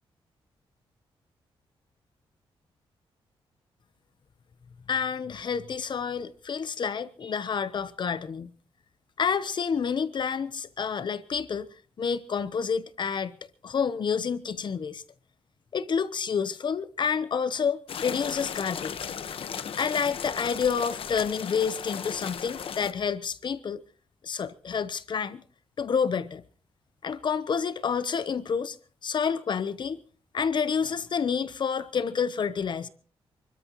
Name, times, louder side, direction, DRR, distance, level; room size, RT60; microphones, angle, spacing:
voice 1, 4.9-8.5 9.2-11.7 12.0-13.4 13.6-15.0 15.7-19.0 19.8-23.8 24.2-25.4 25.8-26.4 27.0-28.8 29.0-30.0 30.3-32.9, left 6 dB, 50° left, 0.9 m, -29 dB
sound 1, 17.9-22.9, left 7 dB, 65° left, 1.2 m, -36 dB
28.0 x 13.0 x 3.1 m
cardioid pair, 110°, 10 cm